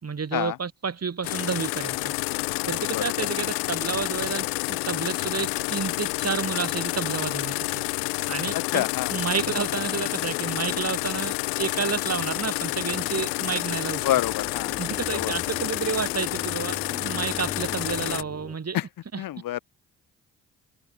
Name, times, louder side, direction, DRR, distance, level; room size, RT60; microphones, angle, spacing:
voice 1, 0.0-2.1 2.7-7.8 8.3-8.8 9.1-14.0 14.8-18.8 19.1-19.2, right 6 dB, 45° right, 4.3 m, -30 dB
sound 1, 1.2-18.2, left 40 dB or more, 85° left, 0.7 m, -29 dB
voice 2, 8.5-9.1 13.9-14.8 15.1-15.3 18.7-18.9 19.2-19.6, left 13 dB, 65° left, 1.2 m, -27 dB
sound 2, 12.9-18.6, equal, 5° right, 4.9 m, -42 dB
hypercardioid pair, 45°, 36 cm